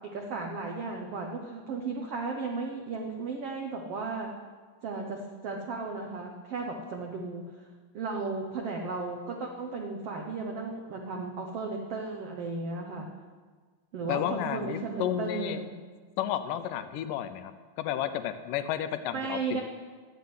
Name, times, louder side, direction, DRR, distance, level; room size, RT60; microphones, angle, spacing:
voice 1, 0.1-4.3 4.8-7.7 7.9-13.1 13.9-15.7 19.1-19.6, right 3 dB, 65° right, 1 dB, 1.5 m, -35 dB
voice 2, 14.1-15.6 16.2-17.5 17.8-19.4, left 11 dB, 75° left, 10 dB, 2.2 m, -31 dB
13.0 x 8.1 x 9.6 m, 1.5 s
omnidirectional pair, 4.1 m